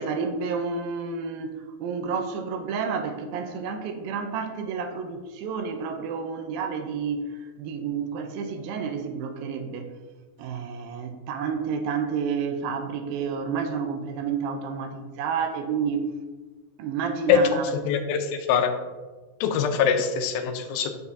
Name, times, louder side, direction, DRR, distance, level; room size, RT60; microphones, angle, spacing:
voice 1, 0.0-9.9 10.4-16.1 16.8-17.7, right 6 dB, 90° right, 6 dB, 2.5 m, -30 dB
voice 2, 17.9-18.8 19.4-21.0, left 7 dB, 85° left, 7 dB, 2.5 m, -23 dB
8.1 x 6.8 x 2.7 m, 1.3 s
omnidirectional pair, 4.1 m